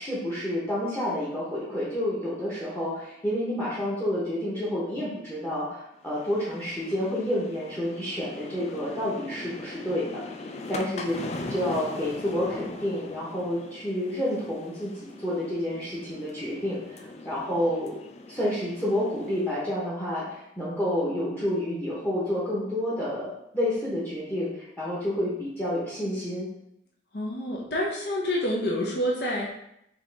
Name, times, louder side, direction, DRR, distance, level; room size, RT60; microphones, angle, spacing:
voice 1, 0.0-10.2 10.7-11.2 11.5-18.0 18.3-26.5, left 1 dB, 10° left, -7 dB, 0.9 m, -29 dB
sound 1, 6.1-19.6, left 2 dB, 35° left, 0.3 m, -40 dB
voice 2, 27.1-29.5, left 1 dB, 60° left, -2 dB, 0.7 m, -28 dB
4.9 x 2.9 x 3.3 m, 0.78 s
head